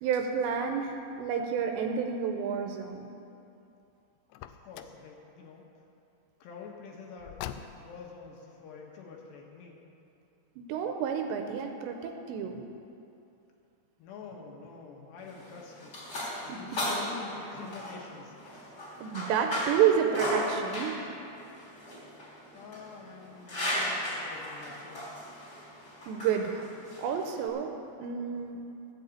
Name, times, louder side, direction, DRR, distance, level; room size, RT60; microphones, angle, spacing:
voice 1, 0.0-3.1 10.7-12.6 16.2-16.8 19.0-21.0 26.1-26.7 27.0-27.7 28.0-28.6, right 7 dB, 80° right, 4 dB, 2.8 m, -30 dB
Car, 4.3-5.1 7.2-8.1, left 10 dB, 90° left, 2.4 m, -42 dB
voice 2, 4.5-5.7 6.4-7.4 7.8-9.8 14.0-16.0 16.4-18.8 22.5-25.4, left 5 dB, 70° left, 0 dB, 3.3 m, -47 dB
sound 1, 15.2-27.5, equal, 25° left, 3.7 m, -36 dB
14.0 x 8.2 x 8.4 m, 2.8 s
omnidirectional pair, 5.5 m